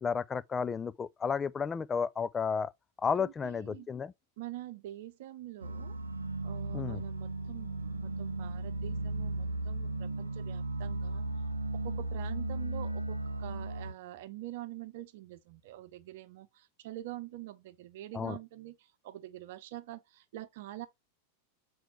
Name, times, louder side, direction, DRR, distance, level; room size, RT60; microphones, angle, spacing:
voice 1, 0.0-2.7 3.0-4.1 6.7-7.0 18.1-18.4, left 6 dB, 20° left, 0.4 m, -32 dB
voice 2, 3.2-3.9 4.4-6.0 6.4-11.3 11.7-20.9, right 14 dB, 55° right, 0.8 m, -45 dB
sound 1, 5.6-13.9, right 2 dB, 80° right, 0.7 m, -36 dB
7.6 x 4.6 x 3.0 m
figure-of-eight pair, 90°, 0 cm